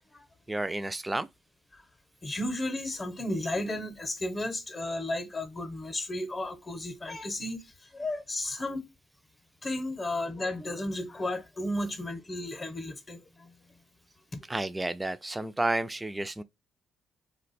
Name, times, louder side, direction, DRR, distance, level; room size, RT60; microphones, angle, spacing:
voice 1, 0.5-1.3 14.5-16.4, right 2 dB, 15° right, 0.3 m, -31 dB
voice 2, 2.2-8.8 9.6-13.5 14.3-14.4, left 1 dB, 30° left, 0.7 m, -34 dB
2.5 x 2.2 x 4.0 m
cardioid pair, 90°, 0 cm